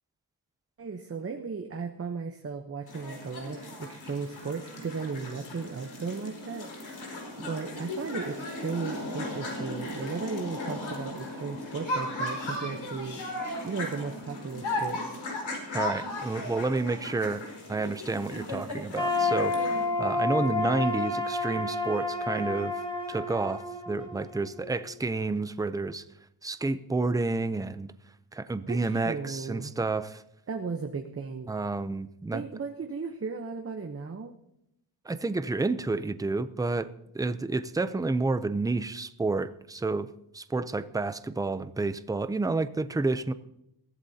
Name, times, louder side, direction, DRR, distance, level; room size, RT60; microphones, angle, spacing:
voice 1, 0.8-6.7 7.4-13.2 13.6-15.1 28.7-29.7 30.5-31.5 32.3-34.3, right 5 dB, 30° right, 5 dB, 0.9 m, -36 dB
sound 1, 2.9-19.8, left 1 dB, 65° left, 5.2 m, -36 dB
voice 2, 15.7-17.4 17.7-19.7 20.0-22.7 23.1-26.0 26.4-27.9 28.3-30.2 31.5-32.4 35.0-36.9 37.1-40.1 40.3-43.3, right 3 dB, 10° right, 12 dB, 0.5 m, -30 dB
sound 2, 18.9-24.9, left 3 dB, 10° left, 2.0 m, -30 dB
22.0 x 15.0 x 2.8 m, 0.80 s
wide cardioid pair, 135°, 48 cm